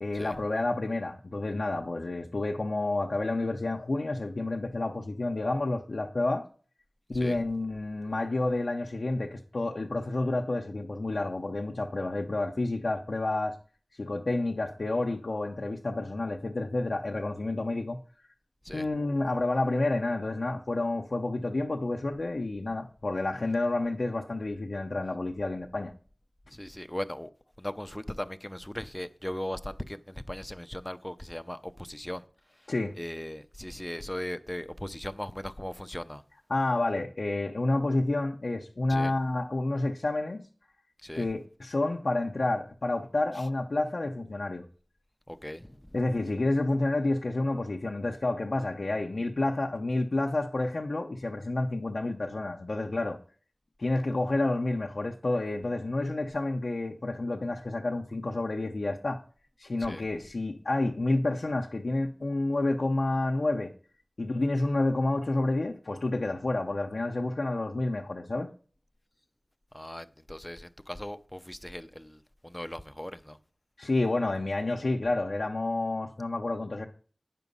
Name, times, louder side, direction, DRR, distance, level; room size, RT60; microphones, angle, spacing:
voice 1, 0.0-6.5 7.1-13.5 14.0-18.0 18.7-25.9 32.7-32.9 36.5-40.4 41.2-44.7 45.9-53.2 53.8-59.2 59.6-63.7 64.2-68.5 73.8-76.9, left 2 dB, 80° left, 0.7 m, -29 dB
voice 2, 7.1-7.4 18.6-18.9 26.5-27.3 27.6-36.2 38.9-39.1 41.0-41.3 43.4-43.5 45.3-46.0 59.8-60.0 69.7-73.4, left 1 dB, 15° left, 0.6 m, -38 dB
9.2 x 5.9 x 5.4 m
wide cardioid pair, 45°, 0 cm